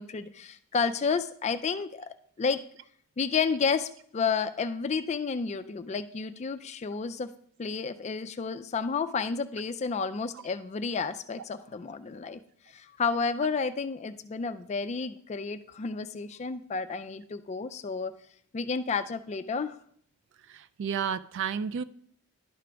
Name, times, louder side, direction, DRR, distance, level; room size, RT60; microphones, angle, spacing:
voice 1, 0.0-2.6 3.2-7.3 7.6-12.4 12.7-18.1 18.5-19.8, left 5 dB, 30° left, 11 dB, 0.3 m, -31 dB
voice 2, 20.5-21.8, right 7 dB, 55° right, 15 dB, 0.3 m, -31 dB
11.5 x 4.9 x 3.4 m, 0.62 s
head